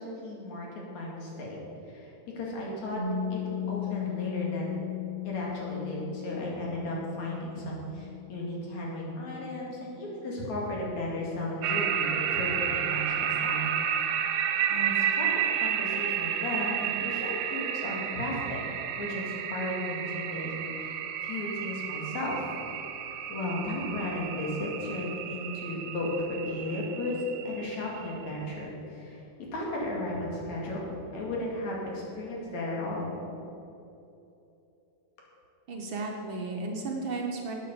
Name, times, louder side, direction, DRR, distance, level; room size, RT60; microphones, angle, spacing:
voice 1, 0.0-1.6 1.9-3.0 3.3-3.4 3.7-4.8 5.2-15.3 15.5-22.5 23.3-27.2 27.5-29.2 29.5-30.8 31.1-33.1, left 1 dB, 65° left, -3 dB, 3.6 m, -35 dB
Piano, 3.0-10.2, left 9 dB, 30° right, 2.0 m, -37 dB
sound 1, 11.6-28.4, right 8 dB, 85° right, 1.3 m, -31 dB
voice 2, 35.7-37.5, right 3 dB, 60° right, 0 dB, 1.4 m, -34 dB
11.5 x 8.7 x 7.0 m, 2.9 s
omnidirectional pair, 3.5 m